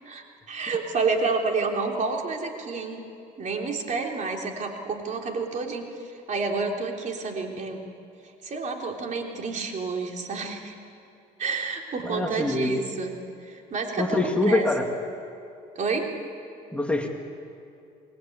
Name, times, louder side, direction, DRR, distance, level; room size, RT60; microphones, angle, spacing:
voice 1, 0.1-3.0 3.4-7.8 8.4-10.7 11.4-13.1 13.4-14.7 15.8-16.1, right 4 dB, 45° right, 2 dB, 3.6 m, -29 dB
voice 2, 12.0-12.8 14.0-14.9 16.7-17.1, left 2 dB, 5° left, 2 dB, 2.3 m, -24 dB
26.0 x 20.5 x 8.8 m, 2.7 s
cardioid pair, 110°, 17 cm